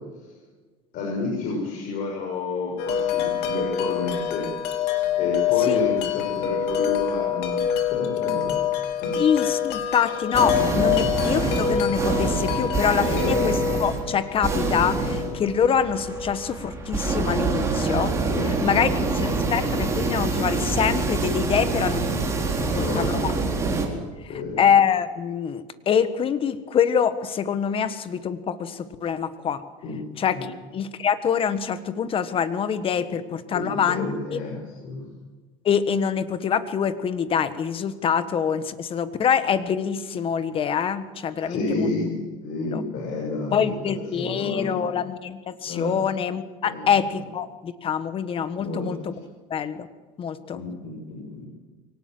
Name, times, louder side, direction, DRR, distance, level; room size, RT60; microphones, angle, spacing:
voice 1, 0.9-4.5 5.1-8.6 9.0-9.2 10.9-11.1 13.1-13.4 18.2-19.1 22.6-23.6 24.3-24.6 29.8-30.0 30.3-30.4 33.5-35.1 41.4-44.8 45.6-46.0 46.6-46.9 48.6-48.9 50.5-51.5, left 3 dB, 50° left, -1 dB, 6.4 m, -30 dB
Wind chime, 2.8-16.7, left 8 dB, 65° left, 3.5 m, -26 dB
voice 2, 9.1-18.1 18.5-22.3 22.7-23.3 23.7-23.8 24.6-29.6 30.2-30.4 30.7-34.4 35.6-41.9 42.7-42.8 43.5-49.1 49.5-49.9 50.2-50.6, left 7 dB, 30° left, 12 dB, 1.5 m, -25 dB
sound 1, 10.3-23.9, right 3 dB, 15° right, 4.4 m, -26 dB
23.5 x 18.0 x 7.8 m, 1.3 s
supercardioid pair, 130°, 17 cm